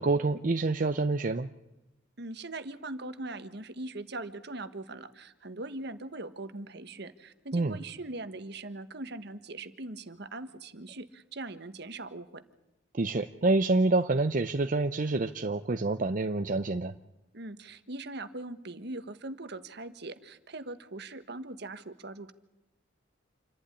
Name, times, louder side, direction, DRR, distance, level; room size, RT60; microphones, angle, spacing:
voice 1, 0.0-1.5 7.5-7.8 13.0-16.9, right 3 dB, 45° right, 8 dB, 0.7 m, -27 dB
voice 2, 2.2-12.4 17.3-22.3, right 2 dB, 60° right, 11 dB, 1.4 m, -41 dB
27.5 x 11.5 x 9.9 m, 0.97 s
head